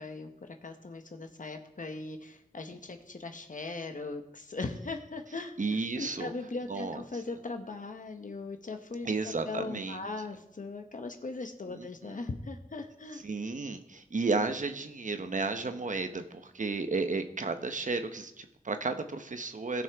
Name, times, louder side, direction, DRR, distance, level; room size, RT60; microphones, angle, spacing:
voice 1, 0.0-13.2, left 3 dB, 60° left, 6 dB, 1.0 m, -39 dB
voice 2, 5.6-6.3 6.7-7.0 9.0-10.0 11.7-11.9 13.2-19.8, right 3 dB, 55° right, 8 dB, 0.9 m, -33 dB
18.0 x 6.1 x 3.6 m, 0.81 s
wide cardioid pair, 80°, 15 cm